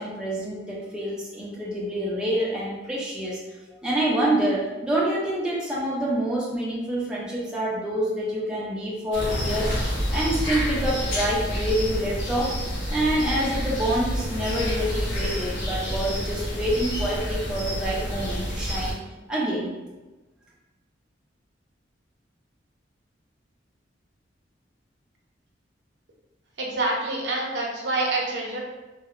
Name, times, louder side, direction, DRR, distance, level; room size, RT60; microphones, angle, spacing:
voice 1, 0.0-3.4 3.8-12.5 12.9-18.9 19.3-19.7, right 1 dB, 5° right, -6 dB, 0.4 m, -27 dB
sound 1, 9.1-18.9, equal, 80° left, 0.7 m, -28 dB
voice 2, 26.6-28.6, right 2 dB, 70° right, -2 dB, 0.6 m, -26 dB
2.8 x 2.1 x 2.4 m, 1.1 s
head